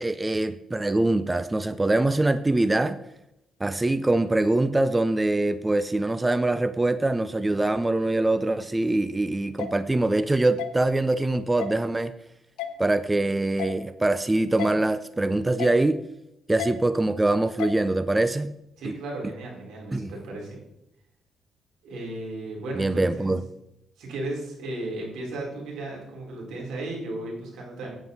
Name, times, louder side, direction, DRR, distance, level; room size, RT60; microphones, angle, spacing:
voice 1, 0.0-3.0 3.6-12.1 12.8-16.0 16.5-18.5 18.8-18.9 19.9-20.1 22.8-23.4, right 2 dB, 15° right, 13 dB, 0.5 m, -23 dB
sound 1, 9.6-9.7 10.6-10.7 11.6-11.8 12.6-12.7 13.6-13.8 14.6-14.7 15.6-15.8 16.6-16.7 17.6-17.8, left 10 dB, 90° left, 1.0 m, -32 dB
voice 2, 18.8-20.6 21.8-23.3 24.0-27.9, right 2 dB, 80° right, -2 dB, 4.3 m, -35 dB
9.4 x 9.2 x 4.0 m, 0.84 s
cardioid pair, 90°, 0 cm